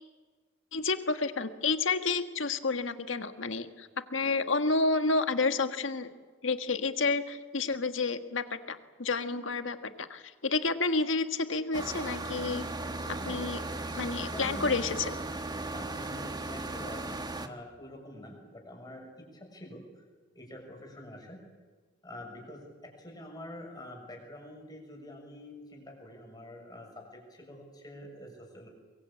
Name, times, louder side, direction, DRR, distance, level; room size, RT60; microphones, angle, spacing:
voice 1, 0.7-6.1 6.4-12.6 13.3-13.6 14.0-15.2, left 3 dB, 75° left, 9 dB, 1.6 m, -30 dB
sound 1, 11.7-17.5, right 2 dB, 20° right, 1.5 m, -37 dB
voice 2, 13.1-13.5 13.8-13.9 14.2-14.7 15.7-20.0 20.3-21.4 22.0-28.7, left 1 dB, 20° left, 1 dB, 6.6 m, -46 dB
23.5 x 23.0 x 8.6 m, 1.4 s
head